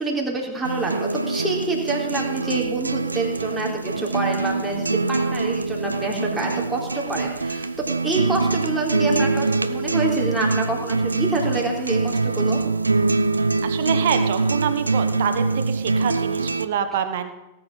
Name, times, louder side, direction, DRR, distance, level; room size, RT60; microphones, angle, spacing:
voice 1, 0.0-7.7 8.0-12.6, right 3 dB, 5° right, -3 dB, 3.8 m, -27 dB
sound 1, 0.6-16.7, right 3 dB, 80° right, 0.5 m, -24 dB
voice 2, 13.6-17.3, right 8 dB, 55° right, 9 dB, 1.3 m, -26 dB
18.0 x 8.8 x 5.5 m, 0.97 s
figure-of-eight pair, 90°, 0 cm